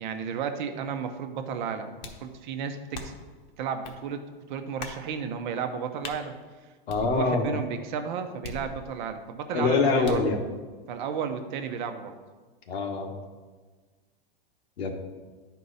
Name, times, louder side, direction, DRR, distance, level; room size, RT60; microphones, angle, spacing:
voice 1, 0.0-3.1 3.6-6.3 7.0-10.2 10.9-12.1, right 6 dB, 50° right, 7 dB, 0.8 m, -33 dB
sound 1, 2.0-2.3 2.9-3.3 3.8-4.0 4.8-5.1 6.0-6.2 6.9-7.5 8.4-9.1 10.0-10.4, left 4 dB, 45° left, 1.0 m, -40 dB
voice 2, 6.9-7.5 9.5-10.4 12.7-13.1 14.8-14.9, left 4 dB, 90° left, 2 dB, 1.5 m, -24 dB
9.8 x 4.6 x 4.1 m, 1.4 s
supercardioid pair, 155°, 31 cm